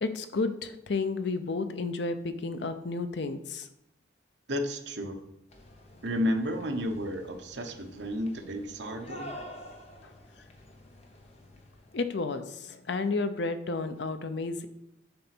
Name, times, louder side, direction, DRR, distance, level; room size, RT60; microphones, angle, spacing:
voice 1, 0.0-3.7 11.9-14.7, left 3 dB, 65° left, 9 dB, 0.6 m, -31 dB
voice 2, 4.5-5.2 6.0-9.3, equal, 70° right, 4 dB, 1.0 m, -32 dB
sound 1, 5.5-12.0, left 1 dB, 35° left, 0.9 m, -48 dB
6.9 x 4.0 x 6.0 m, 0.80 s
head